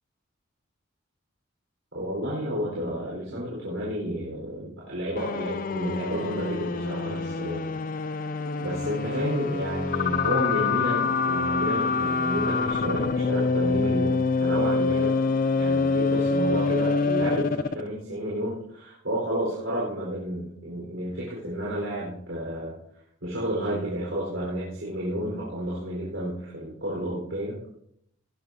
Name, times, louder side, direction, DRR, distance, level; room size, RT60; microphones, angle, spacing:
voice 1, 1.9-7.6 8.6-15.2 15.6-22.7 23.2-27.6, equal, 70° right, -5 dB, 4.4 m, -31 dB
sound 1, 5.2-17.9, left 4 dB, 40° left, 0.4 m, -26 dB
19.5 x 11.0 x 2.8 m, 0.71 s
head